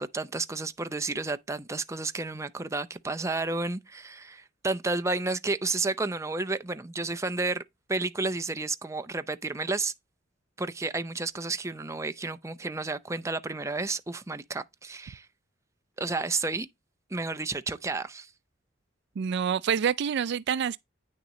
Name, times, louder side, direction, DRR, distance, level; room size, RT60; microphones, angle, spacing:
voice 1, 0.0-7.6 7.9-9.9 10.6-15.2 16.0-16.7 17.1-18.3, right 3 dB, 15° right, 0.6 m, -31 dB
voice 2, 19.2-20.8, right 7 dB, 60° right, 0.4 m, -27 dB
9.2 x 6.5 x 3.1 m
head